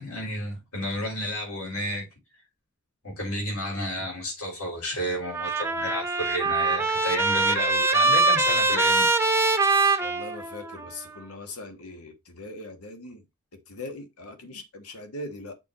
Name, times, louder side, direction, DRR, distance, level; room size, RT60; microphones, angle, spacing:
voice 1, 0.0-2.1 3.0-9.1 14.4-14.6, equal, 75° left, 5.0 m, -32 dB
Trumpet, 5.3-10.9, right 3 dB, 10° right, 0.7 m, -23 dB
voice 2, 10.0-13.2 13.5-15.6, left 2 dB, 90° left, 1.5 m, -40 dB
6.8 x 4.6 x 4.0 m
head